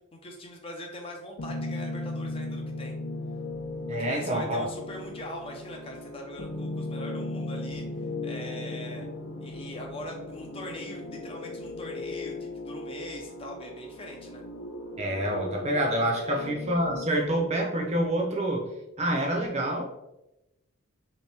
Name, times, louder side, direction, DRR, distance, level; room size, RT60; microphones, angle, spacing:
voice 1, 0.1-2.9 4.0-7.8 8.2-9.1 9.4-14.4 16.2-16.5, left 1 dB, 25° left, 1 dB, 0.4 m, -41 dB
sound 1, 1.4-17.0, left 2 dB, 65° left, 0.6 m, -37 dB
voice 2, 3.9-4.7 15.0-18.7 19.0-19.8, right 1 dB, 30° right, 0 dB, 0.6 m, -27 dB
3.1 x 2.9 x 3.3 m, 0.94 s
head